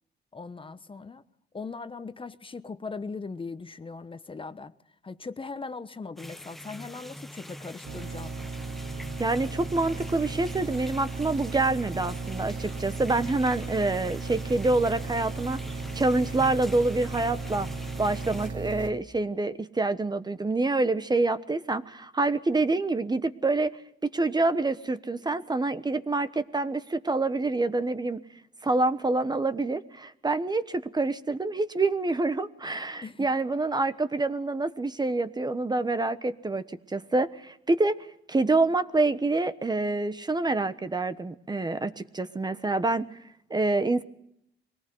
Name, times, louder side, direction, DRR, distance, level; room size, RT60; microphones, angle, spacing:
voice 1, 0.3-1.2 1.5-4.7 5.0-8.3 33.0-33.3, left 4 dB, 25° left, 1.1 m, -39 dB
sound 1, 6.2-18.5, equal, ahead, 1.1 m, -44 dB
sound 2, 7.8-18.9, right 3 dB, 70° right, 3.3 m, -36 dB
voice 2, 9.2-15.6 15.9-17.7 18.0-23.7 24.0-28.2 28.6-36.6 36.9-37.9 38.3-43.1 43.5-44.0, right 2 dB, 20° right, 1.2 m, -26 dB
22.5 x 18.5 x 7.8 m
cardioid pair, 90°, 20 cm